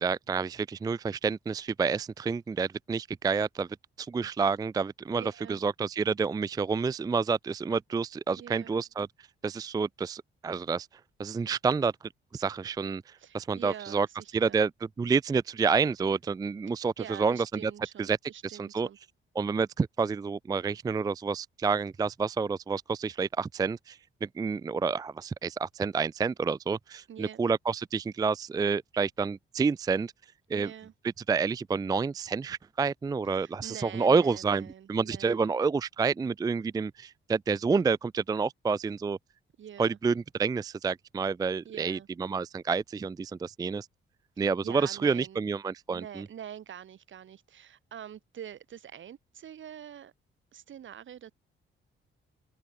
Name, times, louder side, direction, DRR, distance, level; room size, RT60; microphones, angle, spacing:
voice 1, 0.0-3.7 4.0-9.1 9.4-10.9 11.2-11.9 12.3-14.1 14.3-14.7 15.0-17.7 18.0-18.2 18.4-18.9 19.4-30.1 30.5-30.7 31.3-39.2 39.8-43.9 44.4-46.3, right 5 dB, 20° right, 0.3 m, -29 dB
voice 2, 5.1-5.6 8.3-8.7 13.2-14.6 17.0-19.0 27.1-27.4 30.5-30.9 33.3-35.4 39.6-40.0 41.6-42.1 44.4-45.4 45.9-50.1 50.5-51.3, right 9 dB, 65° right, 3.5 m, -45 dB
open air
cardioid pair, 120°, 21 cm